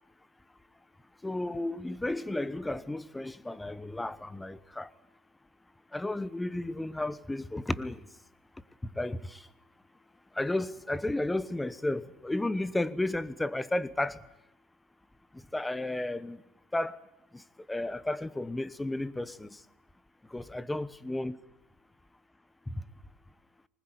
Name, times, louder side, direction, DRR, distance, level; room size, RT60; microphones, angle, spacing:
voice 1, 1.2-4.9 5.9-8.0 9.0-9.4 10.4-14.2 15.5-16.4 16.7-17.0 17.7-19.6 20.3-21.4 22.7-22.8, left 1 dB, 10° left, 1.0 m, -33 dB
21.0 x 19.5 x 9.7 m
supercardioid pair, 95°, 0 cm